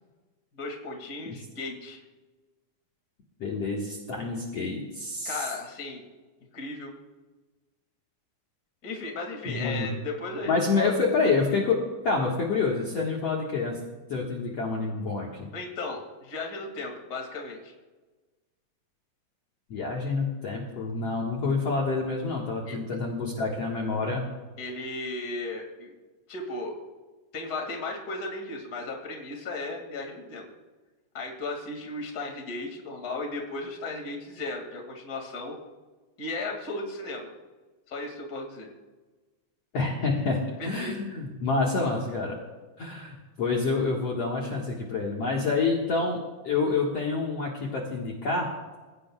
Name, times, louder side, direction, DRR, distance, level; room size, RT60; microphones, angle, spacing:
voice 1, 0.6-2.0 5.2-6.0 6.5-6.9 8.8-11.1 15.5-17.7 22.7-22.8 24.6-25.9 26.3-26.7 27.3-30.5 31.1-35.6 36.2-37.3 37.9-38.7 40.6-41.0, left 2 dB, 30° left, 2 dB, 2.3 m, -35 dB
voice 2, 3.4-5.4 9.5-9.9 10.5-13.8 14.1-15.5 19.7-24.3 39.7-42.4 42.8-46.2 46.4-48.5, left 4 dB, 50° left, -2 dB, 2.3 m, -28 dB
27.5 x 16.5 x 2.4 m, 1.3 s
omnidirectional pair, 4.3 m